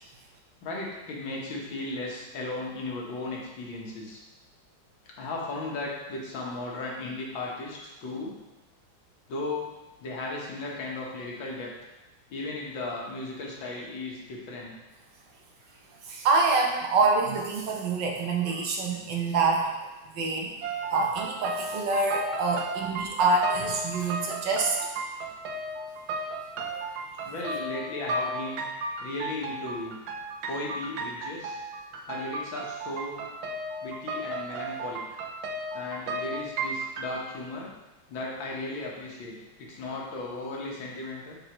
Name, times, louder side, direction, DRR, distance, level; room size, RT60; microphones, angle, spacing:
voice 1, 0.6-4.2 5.2-8.3 9.3-9.7 10.0-11.7 12.3-14.7 27.3-28.7 29.0-30.0 30.5-31.6 32.1-33.2 33.8-35.0 35.7-37.7 38.1-39.3 39.6-41.4, left 2 dB, 70° left, -3 dB, 1.9 m, -36 dB
voice 2, 16.1-20.5 20.9-24.8 26.7-26.8, right 3 dB, 65° right, 0 dB, 1.5 m, -26 dB
sound 1, 20.6-37.1, right 2 dB, 85° right, 1.5 m, -35 dB
8.4 x 4.3 x 3.0 m, 1.1 s
omnidirectional pair, 2.2 m